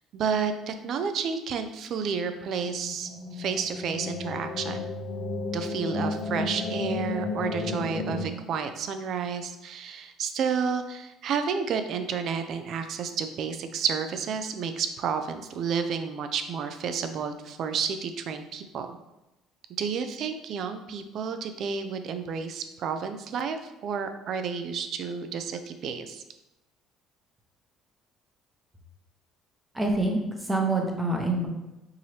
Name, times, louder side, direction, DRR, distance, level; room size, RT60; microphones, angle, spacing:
voice 1, 0.1-4.9 5.5-18.9 19.8-26.2, right 6 dB, 55° right, 8 dB, 0.4 m, -31 dB
sound 1, 2.3-8.3, left 3 dB, 40° left, 0.6 m, -33 dB
voice 2, 29.7-31.5, right 2 dB, 10° right, 2 dB, 0.8 m, -26 dB
4.7 x 2.8 x 3.1 m, 0.97 s
cardioid pair, 110°, 0 cm